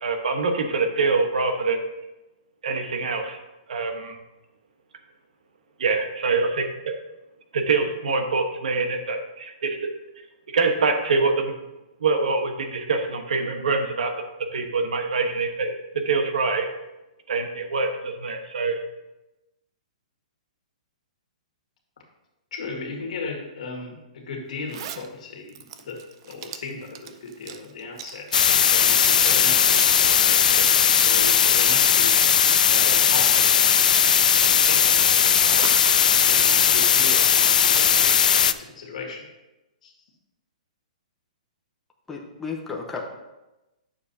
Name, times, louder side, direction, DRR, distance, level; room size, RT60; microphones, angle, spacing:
voice 1, 0.0-1.8 2.6-3.4 3.7-4.2 5.8-6.9 7.5-9.9 10.5-11.5 12.0-14.2 14.5-16.7 17.3-18.8, right 4 dB, 80° right, 5 dB, 1.2 m, -25 dB
voice 2, 22.5-32.4 32.7-33.7 34.5-35.7 36.2-39.3 39.8-40.0, left 3 dB, 65° left, 0 dB, 2.0 m, -36 dB
Zipper (clothing), 24.7-25.1 25.5-32.2 32.6-33.7 34.1-35.9, right 9 dB, 40° right, 0.5 m, -39 dB
sound 1, 28.3-38.5, left 8 dB, 80° left, 0.4 m, -18 dB
voice 3, 42.1-43.1, left 4 dB, 5° left, -1 dB, 0.8 m, -33 dB
9.5 x 6.8 x 2.8 m, 1.0 s
hypercardioid pair, 165°, 4 cm